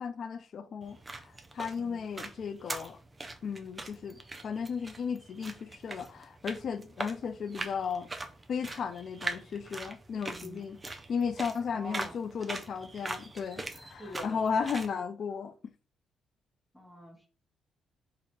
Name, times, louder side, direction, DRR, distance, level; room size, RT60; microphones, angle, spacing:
voice 1, 0.0-3.0 3.4-8.1 8.5-15.5, left 6 dB, 55° left, 0.3 m, -35 dB
sound 1, 0.8-14.9, right 2 dB, 20° right, 0.6 m, -42 dB
voice 2, 10.1-10.7 11.7-12.2 14.0-14.5 16.7-17.3, equal, 10° left, 1.0 m, -46 dB
2.9 x 2.4 x 4.2 m
cardioid pair, 90°, 0 cm